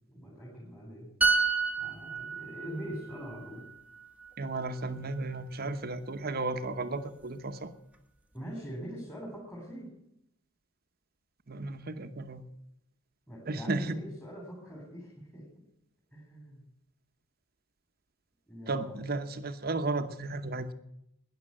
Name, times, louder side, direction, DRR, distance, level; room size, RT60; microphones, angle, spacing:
voice 1, 0.1-1.1 1.8-3.6 8.3-9.9 13.3-15.5 16.1-16.7 18.5-19.0, equal, 10° left, -3 dB, 3.8 m, -43 dB
sound 1, 1.2-4.8 5.1-5.4, right 4 dB, 10° right, 1.3 m, -31 dB
voice 2, 4.4-7.7 11.5-12.4 13.5-14.0 18.7-20.7, right 2 dB, 50° right, 10 dB, 1.0 m, -34 dB
12.5 x 10.5 x 8.6 m, 0.78 s
head